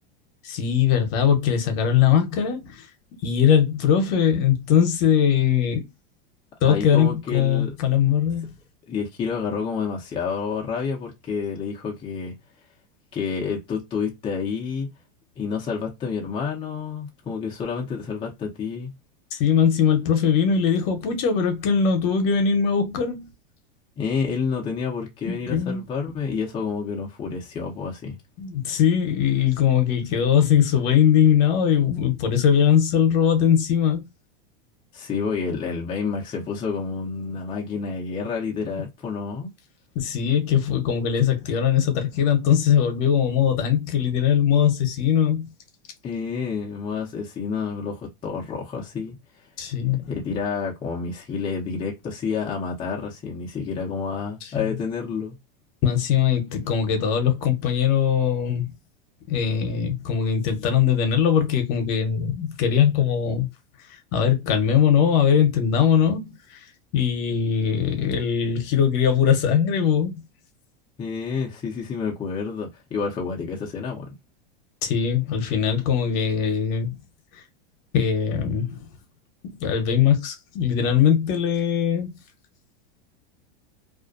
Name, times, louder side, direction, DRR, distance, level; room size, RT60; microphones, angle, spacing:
voice 1, 0.4-2.9 3.2-5.8 6.6-8.5 19.3-23.3 25.3-25.8 28.4-34.0 39.9-45.5 49.6-50.1 54.4-54.7 55.8-58.7 59.3-63.5 64.1-66.6 66.9-70.2 74.8-77.0 77.9-78.9 79.4-82.1, left 8 dB, 50° left, 0.8 m, -21 dB
voice 2, 6.6-7.7 8.9-12.3 13.1-14.9 15.4-18.9 24.0-28.2 34.9-39.5 46.0-49.2 50.0-55.4 71.0-74.0, left 5 dB, 15° left, 0.5 m, -29 dB
2.4 x 2.1 x 2.4 m
supercardioid pair, 145°, 29 cm